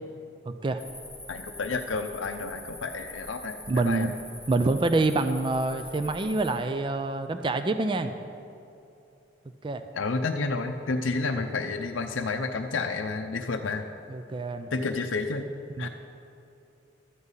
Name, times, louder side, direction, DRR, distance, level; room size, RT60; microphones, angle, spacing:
voice 1, 0.4-0.8 3.7-4.1 4.5-8.1 9.6-9.9 14.1-14.7 15.8-15.9, right 2 dB, 25° right, 9 dB, 0.4 m, -26 dB
sound 1, 0.8-6.5, left 1 dB, 5° right, 2.6 m, -44 dB
voice 2, 1.3-4.1 9.9-13.8 14.7-15.5 15.8-15.9, left 3 dB, 90° left, 4 dB, 0.6 m, -30 dB
12.5 x 5.5 x 8.1 m, 2.8 s
head